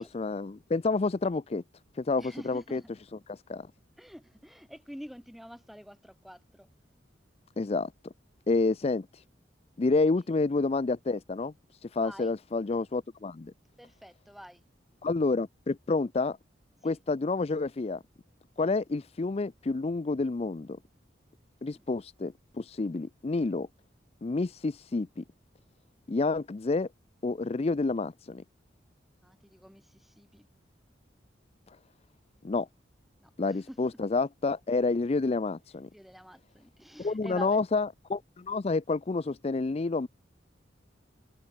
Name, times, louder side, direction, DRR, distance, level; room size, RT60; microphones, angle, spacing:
voice 1, 0.0-1.6 2.0-2.8 3.3-3.7 7.6-7.9 8.5-9.2 9.8-11.5 11.8-13.5 15.0-16.4 16.8-18.0 18.6-20.8 21.6-23.7 24.2-25.2 26.1-26.9 27.2-28.4 32.4-32.7 33.4-35.9 37.0-40.1, left 3 dB, 35° left, 0.4 m, -29 dB
voice 2, 2.2-2.9 4.0-6.7 11.9-12.3 13.8-14.6 16.8-17.0 21.7-21.9 29.2-30.5 33.2-34.0 35.9-37.6, equal, ahead, 2.7 m, -47 dB
head